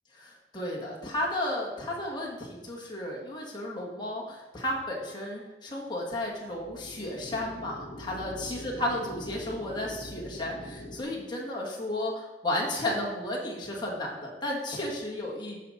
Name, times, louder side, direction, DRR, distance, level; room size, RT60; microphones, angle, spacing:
voice 1, 0.5-15.6, left 1 dB, 25° left, -2 dB, 1.8 m, -33 dB
sound 1, 6.5-11.0, equal, 60° left, 1.4 m, -43 dB
14.0 x 5.1 x 4.1 m, 1.1 s
head